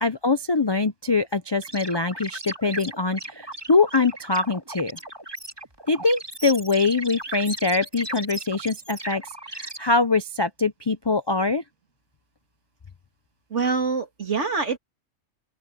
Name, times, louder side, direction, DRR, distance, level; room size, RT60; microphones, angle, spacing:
voice 1, 0.0-5.0 5.9-9.2 9.5-11.6, left 3 dB, 35° left, 0.4 m, -23 dB
sound 1, 1.6-9.8, right 1 dB, 20° right, 2.2 m, -37 dB
voice 2, 13.5-14.8, right 4 dB, 65° right, 2.7 m, -25 dB
open air
omnidirectional pair, 1.3 m